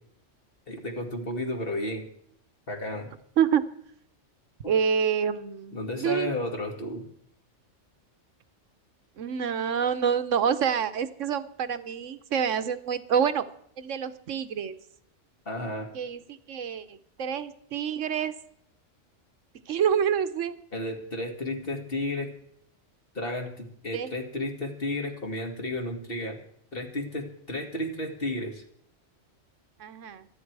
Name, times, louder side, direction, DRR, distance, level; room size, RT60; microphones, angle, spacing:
voice 1, 0.7-2.0 2.7-3.1 4.6-4.7 5.7-7.0 15.5-15.9 20.7-22.3 23.1-26.4 26.7-28.6, left 1 dB, 50° left, 2 dB, 2.5 m, -32 dB
voice 2, 4.7-6.4 9.2-13.4 13.8-14.7 15.9-18.3 19.7-20.6 23.9-24.1 29.8-30.3, right 7 dB, 80° right, 12 dB, 1.2 m, -27 dB
25.0 x 9.5 x 4.7 m, 0.68 s
omnidirectional pair, 1.3 m